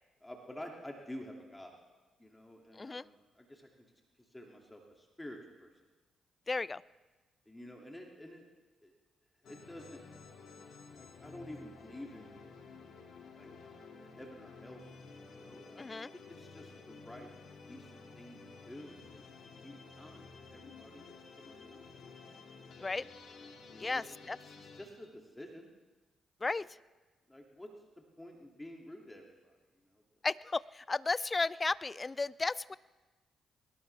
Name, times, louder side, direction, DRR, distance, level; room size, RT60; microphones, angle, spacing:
voice 1, 0.2-1.7 2.2-3.9 4.3-5.7 7.5-8.4 8.8-8.9 9.4-10.0 11.0-12.4 13.3-13.5 13.8-15.0 15.3-15.9 16.1-17.3 17.7-18.4 18.7-22.0 23.7-25.7 26.6-26.7 27.3-27.7 28.0-29.6 29.9-30.0, left 1 dB, 15° left, 1 dB, 2.6 m, -50 dB
voice 2, 2.7-3.0 6.5-6.8 15.8-16.1 22.8-23.1 23.8-24.4 26.4-26.7 30.2-32.8, left 3 dB, 30° left, 21 dB, 0.4 m, -34 dB
sound 1, 9.4-24.9, left 4 dB, 65° left, 2.6 m, -53 dB
21.5 x 19.0 x 3.5 m, 1.3 s
hypercardioid pair, 40°, 0 cm